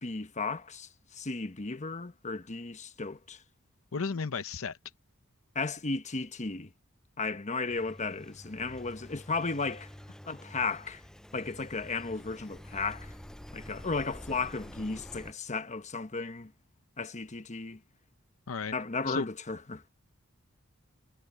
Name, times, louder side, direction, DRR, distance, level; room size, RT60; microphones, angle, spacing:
voice 1, 0.0-3.4 5.5-6.7 7.2-9.9 10.3-11.0 11.3-13.1 13.5-16.5 17.0-17.8 18.7-19.9, left 4 dB, 35° left, 1.1 m, -35 dB
voice 2, 3.9-4.8 18.5-18.7 19.1-19.3, left 5 dB, 70° left, 0.7 m, -34 dB
Engine, 7.7-15.3, equal, 5° left, 0.5 m, -48 dB
head